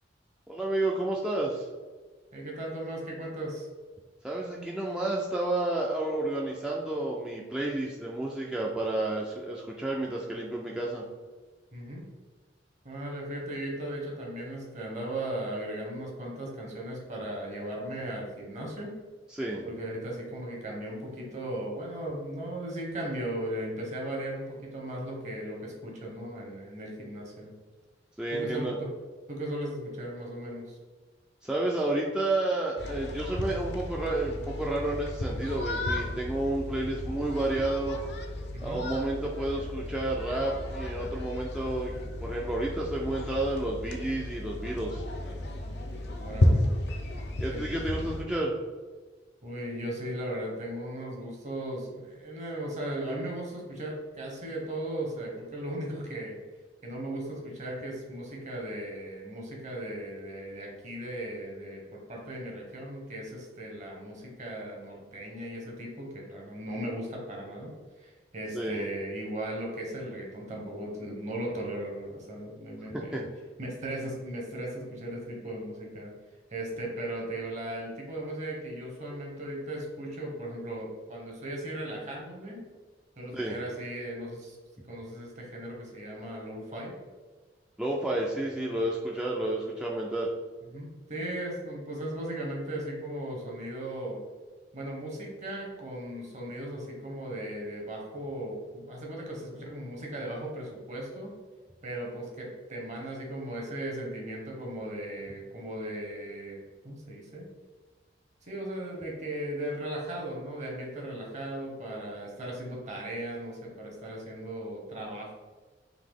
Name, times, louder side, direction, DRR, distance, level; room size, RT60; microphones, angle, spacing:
voice 1, 0.5-1.7 4.2-11.0 19.3-19.6 28.2-28.7 31.4-38.0 38.6-45.0 47.4-48.5 68.5-68.8 72.9-73.2 83.3-83.6 87.8-90.3, right 2 dB, 5° right, -3 dB, 0.3 m, -31 dB
voice 2, 2.3-3.7 11.7-12.0 12.8-18.9 19.6-27.5 28.3-28.9 29.3-30.8 38.5-38.8 46.2-46.7 47.5-47.8 49.4-56.4 56.8-73.3 73.6-76.1 76.5-82.6 83.2-84.6 84.9-87.0 90.7-94.2 94.7-101.3 101.8-107.5 108.4-115.3, right 1 dB, 40° right, -1 dB, 1.0 m, -37 dB
sound 1, 32.8-48.2, left 1 dB, 65° left, 0.6 m, -33 dB
3.8 x 2.8 x 3.5 m, 1.4 s
head